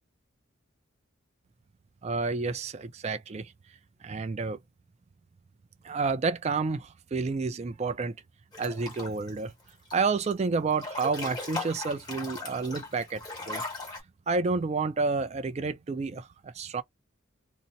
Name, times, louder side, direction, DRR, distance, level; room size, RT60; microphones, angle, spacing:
voice 1, 2.0-3.5 4.0-4.6 5.8-8.2 8.6-9.5 9.9-13.6 14.3-16.8, right 4 dB, 30° right, 0.3 m, -30 dB
Breathing / Bathtub (filling or washing) / Splash splatter, 8.5-9.3 9.7-10.3 10.7-14.0, left 3 dB, 20° left, 1.3 m, -38 dB
2.6 x 2.0 x 3.9 m
head